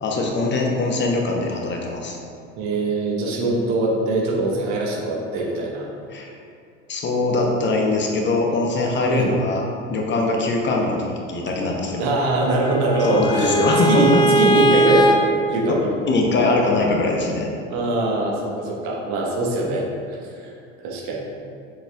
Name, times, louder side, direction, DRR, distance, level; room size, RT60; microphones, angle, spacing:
voice 1, 0.0-2.2 6.1-6.3 6.9-9.6 9.9-12.1 13.0-14.2 16.1-17.5, left 2 dB, 30° left, 1 dB, 0.9 m, -22 dB
voice 2, 2.6-5.9 9.1-9.3 12.0-13.6 13.9-15.2 15.5-15.9 17.7-20.5 20.8-21.2, right 2 dB, 50° right, -2 dB, 1.4 m, -22 dB
Bowed string instrument, 12.0-15.2, right 1 dB, 10° left, 0.4 m, -20 dB
7.6 x 6.3 x 2.4 m, 2.4 s
figure-of-eight pair, 65°, 37 cm